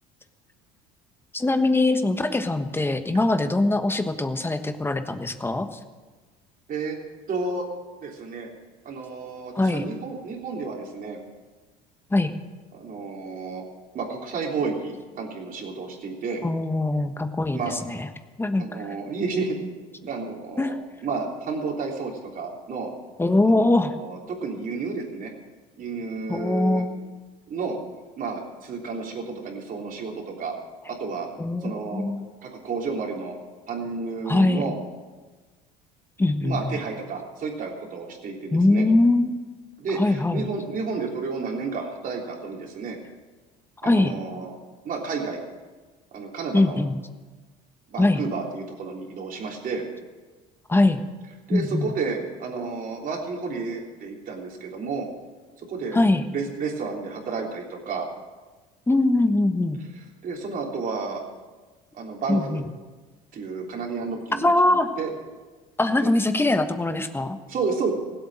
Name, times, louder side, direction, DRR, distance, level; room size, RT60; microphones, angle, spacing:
voice 1, 1.3-5.8 9.5-9.8 12.1-12.3 16.4-18.1 18.4-18.6 20.6-20.7 23.2-23.9 26.3-26.9 31.4-32.3 34.3-34.6 36.2-36.7 38.5-39.5 40.0-40.5 43.8-44.1 46.5-47.0 48.0-48.2 50.7-51.0 51.5-51.9 55.9-56.3 58.9-59.8 62.3-62.6 64.4-64.9 65.8-67.4, left 2 dB, 10° left, 8 dB, 1.2 m, -22 dB
voice 2, 7.3-7.7 8.0-8.5 8.9-11.2 12.7-13.6 13.9-16.4 17.5-17.7 18.6-19.6 20.0-20.8 21.0-22.9 23.5-25.3 25.8-26.8 27.5-27.8 28.2-30.5 30.9-31.3 31.6-32.0 32.4-33.4 33.7-34.7 36.4-38.9 39.8-43.0 43.8-44.6 44.8-45.4 46.1-46.8 47.9-49.8 51.5-55.1 55.7-56.0 56.3-58.1 60.2-61.2 61.9-62.6 63.3-65.1 66.0-66.1 67.5-67.9, right 4 dB, 45° right, 0 dB, 3.5 m, -31 dB
17.0 x 8.2 x 7.6 m, 1.3 s
supercardioid pair, 90°, 19 cm